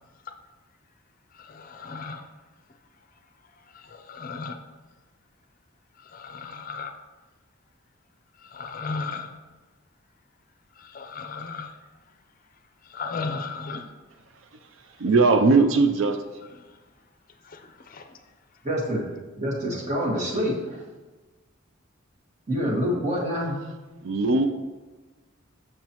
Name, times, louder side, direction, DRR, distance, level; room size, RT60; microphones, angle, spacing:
voice 1, 1.3-2.2 3.7-4.6 6.0-6.9 8.4-9.3 10.8-11.8 12.8-13.9 16.6-16.8 17.4-18.2, left 4 dB, 45° left, 6 dB, 0.5 m, -35 dB
voice 2, 15.0-16.2 24.0-24.5, right 3 dB, 70° right, 7 dB, 0.4 m, -19 dB
voice 3, 18.6-19.1 19.4-20.8 22.5-23.6, equal, 35° right, -2 dB, 1.5 m, -26 dB
7.4 x 6.7 x 3.0 m, 1.2 s
head